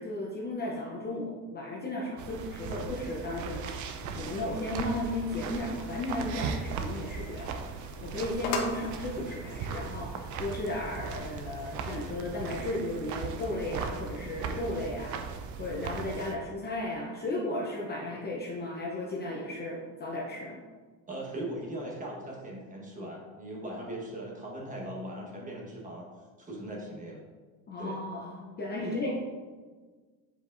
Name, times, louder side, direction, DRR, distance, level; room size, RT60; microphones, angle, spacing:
voice 1, 0.0-15.3 15.6-20.6 27.7-29.1, left 1 dB, 25° left, -2 dB, 0.8 m, -35 dB
sound 1, 2.2-16.3, right 5 dB, 45° right, 0.6 m, -38 dB
sound 2, 5.4-12.7, left 3 dB, 60° left, 1.1 m, -42 dB
voice 2, 21.1-26.1 26.5-27.2 27.8-28.0 28.8-29.0, right 1 dB, 20° right, -2 dB, 1.4 m, -39 dB
7.9 x 4.7 x 2.6 m, 1.4 s
cardioid pair, 130°, 42 cm